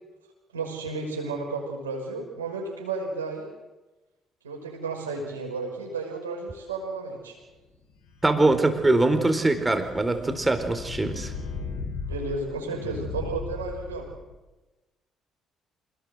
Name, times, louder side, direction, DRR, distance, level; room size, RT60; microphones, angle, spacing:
voice 1, 0.5-3.5 4.4-7.4 12.1-14.1, right 3 dB, 85° right, 1 dB, 5.8 m, -33 dB
sound 1, 8.0-14.3, left 4 dB, 75° left, 4.7 m, -37 dB
voice 2, 8.2-11.3, right 2 dB, 20° right, 8 dB, 4.1 m, -22 dB
27.0 x 19.0 x 7.9 m, 1.1 s
hypercardioid pair, 50°, 0 cm